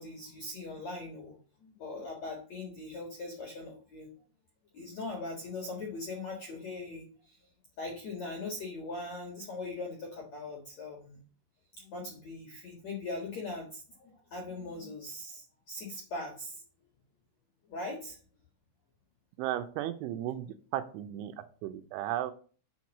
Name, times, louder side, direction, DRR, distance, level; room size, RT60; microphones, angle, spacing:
voice 1, 0.0-1.3 1.6-4.1 4.7-7.4 7.8-11.2 11.8-16.6 17.7-18.2, left 2 dB, 65° left, 1 dB, 1.8 m, -40 dB
voice 2, 19.4-20.5 20.7-21.3 21.6-22.3, right 12 dB, 80° right, 9 dB, 3.0 m, -34 dB
8.8 x 4.5 x 7.2 m, 0.40 s
omnidirectional pair, 5.6 m